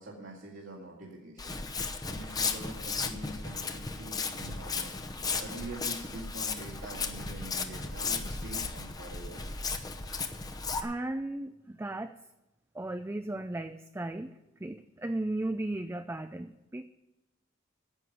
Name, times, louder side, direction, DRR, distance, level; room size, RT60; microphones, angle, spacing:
voice 1, 0.0-1.6 2.1-4.9 5.4-9.4, right 1 dB, 75° right, -5 dB, 2.5 m, -45 dB
Walk footsteps, 1.4-10.8, left 4 dB, 20° left, 0.8 m, -35 dB
voice 2, 10.8-12.1 12.7-14.3 14.6-16.9, right 1 dB, 15° right, 8 dB, 0.4 m, -35 dB
11.0 x 7.7 x 9.4 m, 0.95 s
head